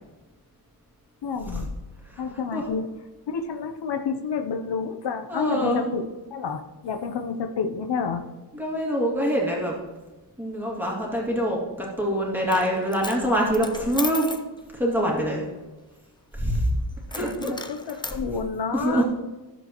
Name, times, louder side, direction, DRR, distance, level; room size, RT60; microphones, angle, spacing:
voice 1, 1.2-1.7 2.2-2.9 3.3-8.2 17.2-19.0, left 5 dB, 70° left, 6 dB, 0.8 m, -29 dB
voice 2, 5.3-5.8 8.5-9.8 10.4-14.4 14.7-15.5 16.3-16.7 17.1-17.5 17.9-18.2 18.7-19.0, equal, 5° right, -3 dB, 2.2 m, -25 dB
Coin (dropping), 12.4-12.7 12.9-14.5 17.1-18.2, left 2 dB, 10° left, 0.4 m, -35 dB
13.5 x 7.3 x 3.0 m, 1.2 s
wide cardioid pair, 165°, 43 cm